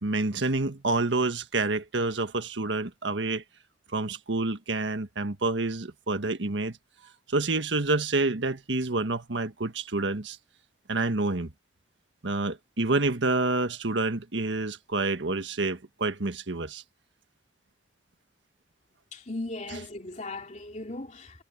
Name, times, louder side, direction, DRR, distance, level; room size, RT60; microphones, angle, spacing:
voice 1, 0.0-3.4 3.9-6.8 7.3-10.4 10.9-11.5 12.2-16.8, right 3 dB, 85° right, 1.5 m, -28 dB
voice 2, 19.1-21.4, left 2 dB, 40° left, 3.2 m, -37 dB
head